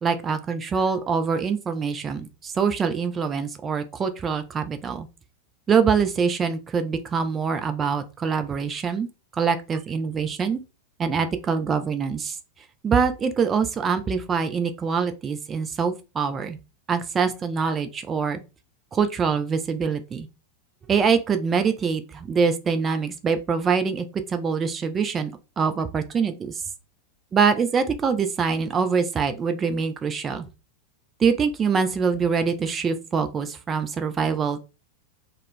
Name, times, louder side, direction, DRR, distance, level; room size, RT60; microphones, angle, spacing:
voice 1, 0.0-5.1 5.7-9.1 9.4-10.6 11.0-12.4 12.8-16.6 16.9-18.4 18.9-20.3 20.9-25.3 25.6-26.5 27.3-30.5 31.2-34.7, right 6 dB, 20° right, 8 dB, 0.3 m, -24 dB
2.2 x 2.1 x 3.6 m, 0.30 s
figure-of-eight pair, 90°, 0 cm